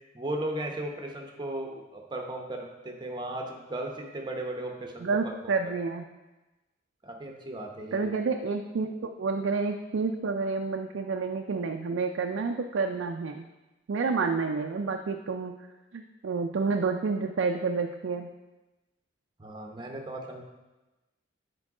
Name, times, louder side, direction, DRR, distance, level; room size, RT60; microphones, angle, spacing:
voice 1, 0.1-5.3 5.6-5.7 7.0-8.2 19.4-20.4, right 1 dB, 25° right, 2 dB, 0.8 m, -36 dB
voice 2, 5.0-6.0 7.9-13.5 13.9-15.5 15.9-18.3, right 4 dB, 75° right, 4 dB, 0.4 m, -29 dB
7.4 x 4.6 x 4.8 m, 1.1 s
head